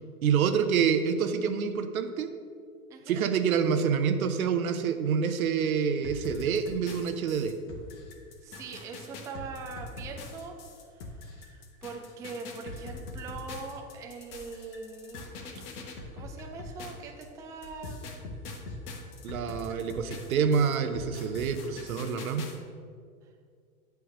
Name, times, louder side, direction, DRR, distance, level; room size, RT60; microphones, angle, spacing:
voice 1, 0.2-2.3 3.1-7.5 19.2-22.5, right 6 dB, 75° right, 9 dB, 0.8 m, -27 dB
voice 2, 2.9-3.2 8.4-15.3 16.1-18.0, right 4 dB, 10° right, 3 dB, 0.3 m, -42 dB
sound 1, 6.0-17.2 17.6-22.6, left 3 dB, 55° left, 1.3 m, -43 dB
8.0 x 3.5 x 6.6 m, 2.1 s
hypercardioid pair, 100°, 43 cm